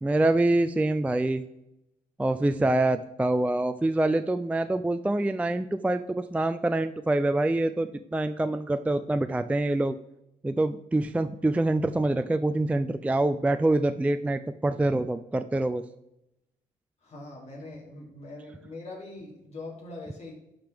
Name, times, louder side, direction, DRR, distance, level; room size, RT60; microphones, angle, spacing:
voice 1, 0.0-1.4 2.2-10.0 10.4-15.8, right 2 dB, 10° right, 10 dB, 0.3 m, -25 dB
voice 2, 17.0-20.3, left 2 dB, 45° left, -3 dB, 2.8 m, -42 dB
11.5 x 5.1 x 3.5 m, 0.85 s
cardioid pair, 90°, 16 cm